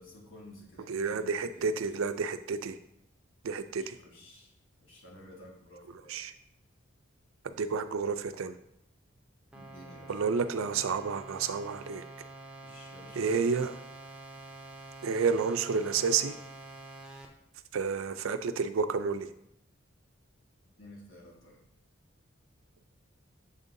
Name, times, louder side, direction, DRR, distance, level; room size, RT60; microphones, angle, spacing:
voice 1, 0.0-1.7 3.7-4.5 4.8-6.1 9.5-10.2 12.6-13.8 20.8-21.6, left 1 dB, 70° left, -2 dB, 1.7 m, -52 dB
voice 2, 0.9-2.8 3.4-4.0 6.1-6.3 7.4-8.6 10.1-12.0 13.2-13.7 15.0-16.3 17.7-19.3, right 5 dB, 85° right, 11 dB, 0.4 m, -30 dB
sound 1, 9.5-17.3, right 2 dB, 5° right, 0.5 m, -47 dB
7.0 x 5.2 x 2.7 m, 0.80 s
head